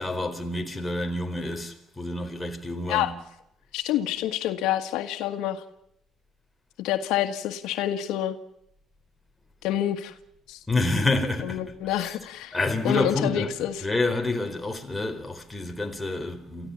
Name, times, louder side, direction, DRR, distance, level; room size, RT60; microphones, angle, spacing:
voice 1, 0.0-3.1 10.7-11.7 12.0-12.1 12.5-16.7, left 2 dB, 10° left, 4.2 m, -28 dB
voice 2, 3.7-5.6 6.8-8.4 9.6-10.1 10.5-10.6 11.4-12.6 12.8-13.8, left 12 dB, 90° left, 1.7 m, -27 dB
30.0 x 15.0 x 7.2 m
cardioid pair, 105°, 0 cm